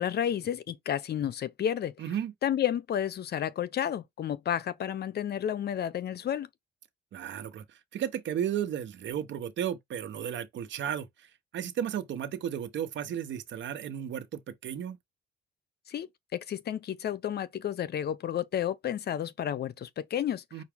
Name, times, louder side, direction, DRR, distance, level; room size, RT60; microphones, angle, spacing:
voice 1, 0.0-1.9 2.4-6.5 15.9-20.6, left 10 dB, 55° left, 0.6 m, -31 dB
voice 2, 2.0-2.3 7.1-7.6 7.9-11.3 11.5-15.0 20.5-20.6, right 9 dB, 70° right, 1.0 m, -34 dB
5.9 x 2.4 x 3.5 m
cardioid pair, 90°, 20 cm